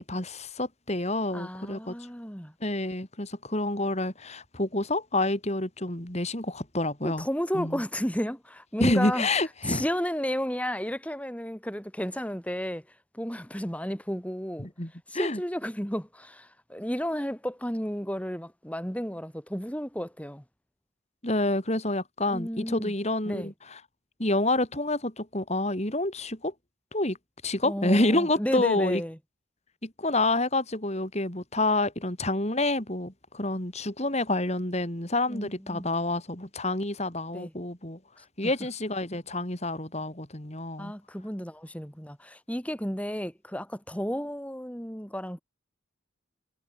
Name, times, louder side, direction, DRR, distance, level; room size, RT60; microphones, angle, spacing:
voice 1, 0.0-1.9 2.6-7.3 7.5-7.8 8.8-9.9 14.6-15.4 21.2-23.8 24.2-26.5 26.9-27.2 27.4-29.0 29.8-38.0 38.4-40.9, left 2 dB, 35° left, 3.9 m, -28 dB
voice 2, 1.3-2.5 7.0-9.3 9.7-12.8 13.1-14.7 15.1-20.4 22.3-22.9 23.3-23.5 27.6-29.2 35.3-35.9 37.3-37.5 40.8-45.4, equal, 5° left, 5.4 m, -32 dB
head